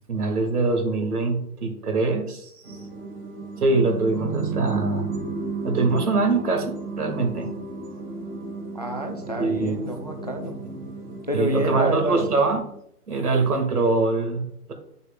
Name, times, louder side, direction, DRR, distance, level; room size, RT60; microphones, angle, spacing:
voice 1, 0.1-2.8 3.6-5.1 5.6-7.6 9.4-9.8 10.4-10.7 11.3-12.7 13.1-14.7, right 3 dB, 70° right, 5 dB, 2.1 m, -23 dB
sound 1, 2.6-12.8, right 3 dB, 40° right, 2.3 m, -34 dB
Keyboard (musical), 4.2-6.0, right 6 dB, 10° left, 0.9 m, -35 dB
voice 2, 8.7-10.6 11.3-12.2, equal, 30° left, 4 dB, 0.4 m, -28 dB
9.9 x 6.6 x 2.4 m, 0.71 s
hypercardioid pair, 145°, 46 cm